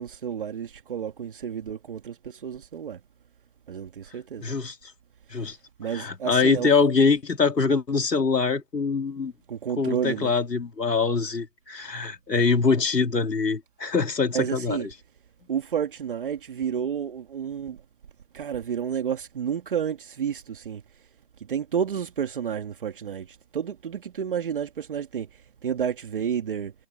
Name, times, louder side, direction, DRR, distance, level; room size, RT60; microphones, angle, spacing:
voice 1, 0.0-3.0 3.7-4.5 5.8-6.7 9.5-10.3 14.3-14.9 15.5-17.8 18.3-20.8 21.5-25.3 25.6-26.7, right 8 dB, 30° right, 2.5 m, -30 dB
voice 2, 4.4-4.8 5.3-5.6 5.9-9.3 9.8-14.9, left 4 dB, 75° left, 3.6 m, -24 dB
hypercardioid pair, 165°, 50 cm